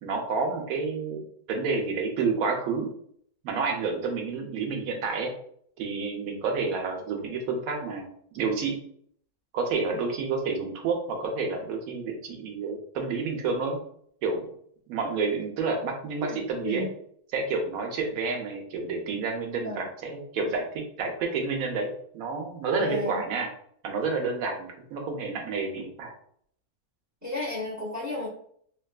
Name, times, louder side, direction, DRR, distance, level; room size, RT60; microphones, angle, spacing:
voice 1, 0.0-1.2 1.5-2.9 3.4-5.3 5.8-8.1 8.3-8.8 9.5-13.8 14.2-14.4 14.9-16.9 17.3-23.5 23.8-26.1, right 4 dB, 70° right, 2 dB, 1.0 m, -29 dB
voice 2, 16.2-16.9 19.6-19.9 22.8-23.2 27.2-28.3, left 2 dB, 20° right, -4 dB, 0.5 m, -33 dB
2.8 x 2.3 x 2.3 m, 0.63 s
omnidirectional pair, 1.6 m